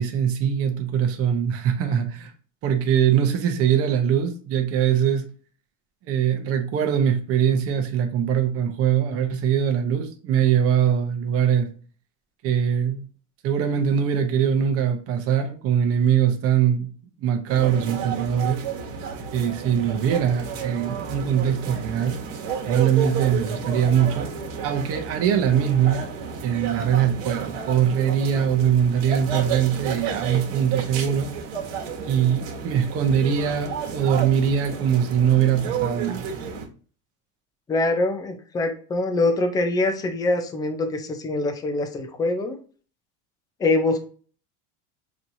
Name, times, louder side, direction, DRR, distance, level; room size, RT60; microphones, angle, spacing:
voice 1, 0.0-2.3 2.6-5.3 6.0-11.7 12.4-13.0 13.4-16.9 17.2-18.6 19.3-22.2 22.6-24.3 24.6-26.0 26.4-31.3 32.0-36.4, right 8 dB, 40° right, 0.8 m, -22 dB
sound 1, 17.5-36.7, right 6 dB, 85° right, 1.2 m, -32 dB
voice 2, 37.7-42.6 43.6-44.0, left 2 dB, 10° left, 0.5 m, -24 dB
6.1 x 2.9 x 2.6 m
supercardioid pair, 145°, 37 cm